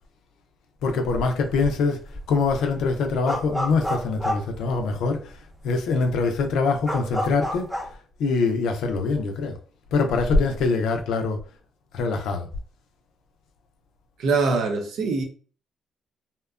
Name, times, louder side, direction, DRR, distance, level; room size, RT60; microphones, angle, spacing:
voice 1, 0.8-5.4 5.6-7.7 8.2-9.6 9.9-11.4 11.9-12.5, left 4 dB, 85° left, 0.4 m, -24 dB
sound 1, 1.5-1.8 2.1-5.3 5.7-5.8 6.1-7.9, equal, ahead, 0.6 m, -30 dB
voice 2, 14.2-15.2, right 4 dB, 80° right, 0.6 m, -23 dB
2.8 x 2.2 x 2.3 m
cardioid pair, 90°, 0 cm